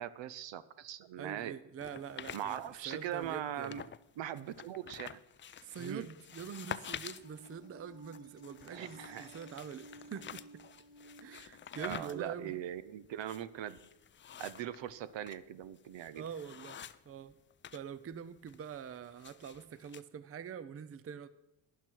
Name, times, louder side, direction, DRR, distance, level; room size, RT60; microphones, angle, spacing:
voice 1, 0.0-1.6 2.3-3.8 4.2-5.2 5.8-6.1 8.7-9.3 11.8-13.8 14.4-16.2, right 11 dB, 60° right, 16 dB, 0.8 m, -41 dB
voice 2, 1.2-3.9 5.6-10.6 11.2-12.6 16.1-16.8 17.0-17.3 17.7-21.3, right 7 dB, 30° right, 15 dB, 0.6 m, -45 dB
sound 1, 1.8-4.0 4.4-17.8 18.1-20.0, left 9 dB, 25° left, 0.3 m, -49 dB
sound 2, 5.5-12.0, equal, 10° right, 4.0 m, -71 dB
sound 3, 7.2-13.7, right 1 dB, 85° right, 3.9 m, -57 dB
12.0 x 10.5 x 4.6 m, 0.90 s
cardioid pair, 90°, 49 cm